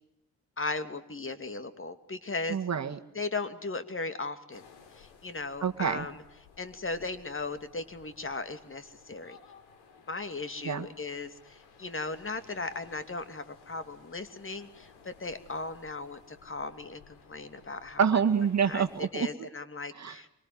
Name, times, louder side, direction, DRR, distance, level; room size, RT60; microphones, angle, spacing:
voice 1, 0.6-2.6 3.1-4.6 4.9-6.2 6.6-9.4 10.1-18.0 18.6-20.3, left 3 dB, 30° left, 10 dB, 2.7 m, -37 dB
voice 2, 2.5-3.0 5.6-6.1 10.6-10.9 18.0-19.5 19.9-20.2, right 7 dB, 45° right, 8 dB, 1.9 m, -27 dB
sound 1, 4.5-19.1, left 6 dB, 75° left, 4.3 m, -57 dB
25.0 x 24.0 x 9.6 m, 0.83 s
hypercardioid pair, 45°, 39 cm